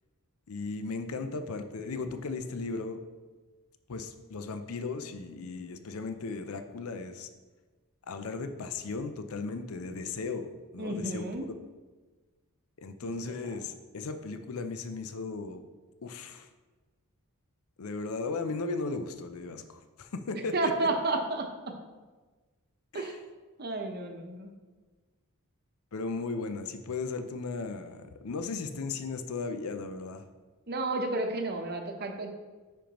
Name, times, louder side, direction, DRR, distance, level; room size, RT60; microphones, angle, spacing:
voice 1, 0.5-3.0 3.9-7.3 8.1-11.5 12.8-15.6 16.0-16.5 17.8-20.7 22.9-23.2 25.9-30.2, left 4 dB, 75° left, 8 dB, 0.5 m, -36 dB
voice 2, 10.8-11.5 13.0-13.1 20.5-21.7 22.9-23.2 23.6-24.5 30.7-32.3, right 2 dB, 45° right, 4 dB, 0.8 m, -31 dB
10.0 x 5.2 x 3.0 m, 1.3 s
head